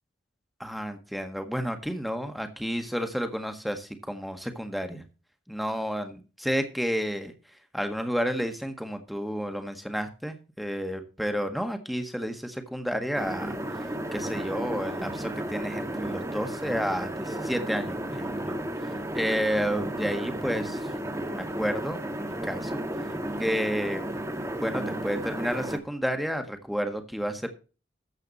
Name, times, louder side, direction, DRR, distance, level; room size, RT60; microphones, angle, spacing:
voice 1, 0.6-5.0 5.5-7.3 7.7-18.6 19.1-20.9 21.3-22.7 23.4-24.1 24.6-27.5, equal, ahead, 6 dB, 1.6 m, -31 dB
sound 1, 13.1-25.8, right 1 dB, 15° right, 1.3 m, -33 dB
13.5 x 8.1 x 4.2 m, 0.33 s
head